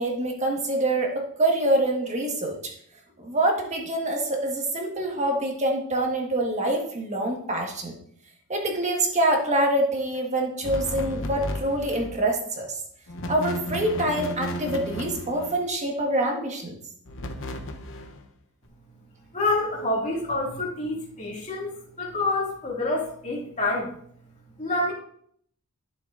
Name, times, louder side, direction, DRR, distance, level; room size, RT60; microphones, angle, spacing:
voice 1, 0.0-2.7 3.2-7.9 8.5-12.8 13.3-16.8, right 1 dB, 30° right, 1 dB, 1.5 m, -25 dB
sound 1, 10.6-12.2 13.1-15.7 17.1-18.2, equal, 60° left, 0.9 m, -34 dB
voice 2, 19.3-23.9 24.6-24.9, left 2 dB, 35° left, -3 dB, 2.4 m, -27 dB
12.0 x 6.9 x 2.6 m, 0.64 s
head